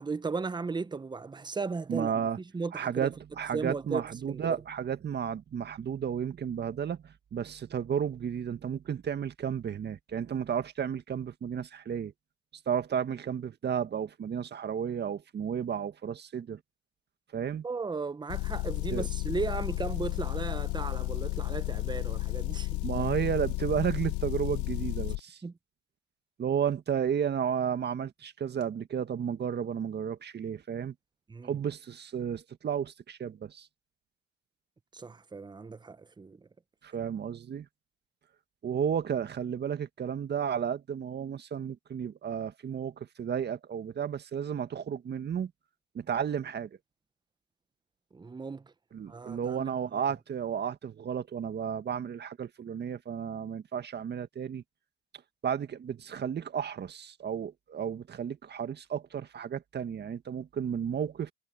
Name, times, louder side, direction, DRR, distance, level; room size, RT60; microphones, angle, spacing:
voice 1, 0.0-2.3 2.5-3.1 3.5-4.5 17.6-22.8 25.4-25.5 31.3-31.5 34.9-36.4 48.1-48.7 49.1-50.0, right 4 dB, 10° right, 1.1 m, -36 dB
voice 2, 1.9-2.4 2.7-12.1 12.7-16.6 17.3-17.6 18.9-19.0 22.8-25.4 26.4-30.9 31.4-33.7 36.8-37.7 38.6-45.5 45.9-46.7 48.9-54.6 55.4-61.3, right 8 dB, 30° right, 1.9 m, -33 dB
Motor vehicle (road) / Engine, 18.3-25.2, left 22 dB, 55° left, 1.0 m, -32 dB
hypercardioid pair, 100°, 36 cm